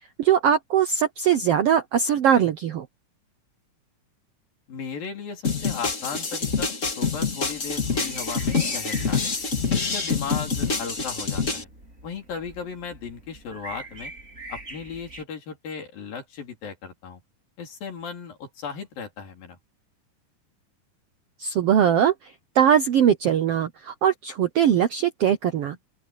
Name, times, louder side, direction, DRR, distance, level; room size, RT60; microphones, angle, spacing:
voice 1, 0.2-2.8 21.4-22.1 22.5-25.8, right 9 dB, 75° right, 1.4 m, -21 dB
voice 2, 4.7-9.3 9.7-11.7 12.0-14.1 14.5-17.2 17.6-19.6, left 6 dB, 80° left, 5.6 m, -36 dB
sound 1, 5.4-11.6, left 4 dB, 25° left, 1.9 m, -26 dB
sound 2, 7.5-15.2, right 2 dB, 20° right, 4.5 m, -43 dB
open air
omnidirectional pair, 4.0 m